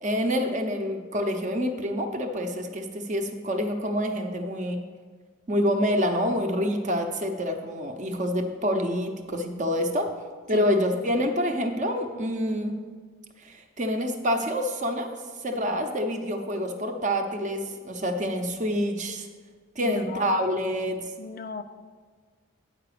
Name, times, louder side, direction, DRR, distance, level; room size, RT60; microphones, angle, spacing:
voice 1, 0.0-4.8 5.5-10.1 10.5-12.8 13.4-15.1 15.4-19.3 19.7-21.1, equal, 40° right, 5 dB, 0.8 m, -27 dB
voice 2, 19.8-20.9 21.2-21.6, left 5 dB, 45° left, 9 dB, 0.4 m, -38 dB
8.9 x 4.8 x 6.8 m, 1.5 s
head